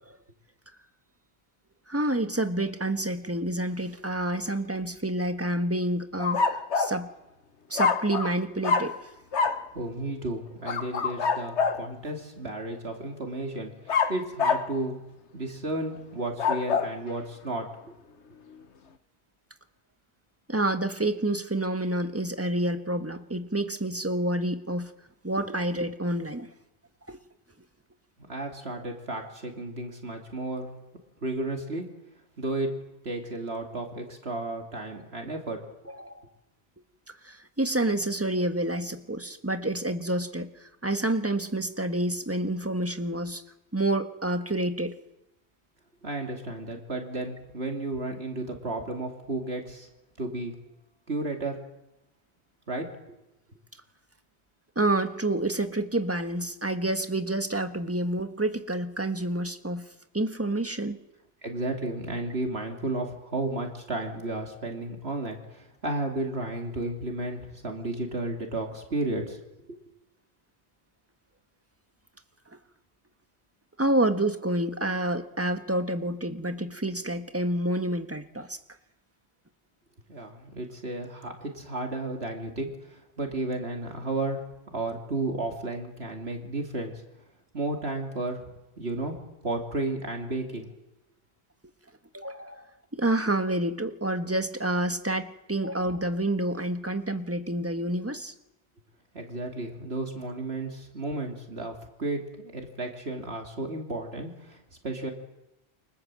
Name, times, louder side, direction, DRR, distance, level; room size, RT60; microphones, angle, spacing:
voice 1, 1.9-7.1 7.7-9.1 20.5-24.9 25.2-26.5 27.1-27.2 35.9-36.2 37.2-43.4 43.7-45.0 54.7-59.8 60.1-61.0 73.8-78.6 92.1-98.3, right 1 dB, 15° right, 8 dB, 1.5 m, -28 dB
sound 1, 6.2-7.0 7.8-8.4 8.6-9.0 9.3-9.6 10.6-11.9 13.9-14.7 16.2-16.9, left 5 dB, 85° left, 1.6 m, -26 dB
voice 2, 9.7-15.0 15.3-17.9 28.3-30.7 31.2-31.9 32.4-32.8 33.0-35.7 46.0-49.9 50.2-50.6 51.1-51.6 52.7-52.9 61.4-69.4 69.7-69.8 80.1-84.5 84.7-86.9 87.5-90.7 99.1-105.1, right 2 dB, 65° right, 3 dB, 3.1 m, -33 dB
28.5 x 25.0 x 7.6 m, 0.93 s
omnidirectional pair, 1.1 m